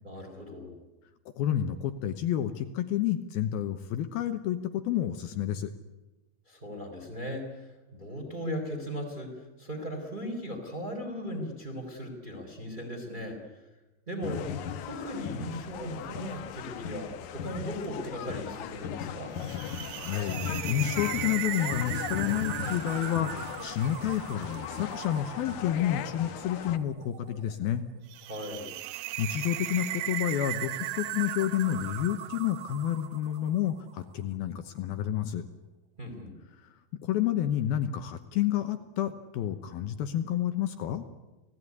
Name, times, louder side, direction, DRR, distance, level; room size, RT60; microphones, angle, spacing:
voice 1, 0.0-0.8 6.5-13.6 14.1-19.3 28.2-28.7 36.0-36.3, equal, 10° right, 3 dB, 3.7 m, -38 dB
voice 2, 1.4-5.7 20.0-27.8 29.2-35.4 37.0-41.0, left 11 dB, 70° left, 9 dB, 2.6 m, -30 dB
sound 1, 14.2-26.8, left 8 dB, 90° left, 1.7 m, -37 dB
sound 2, 19.4-33.7, right 13 dB, 80° right, 3.2 m, -38 dB
29.0 x 17.5 x 9.7 m, 1.1 s
omnidirectional pair, 5.1 m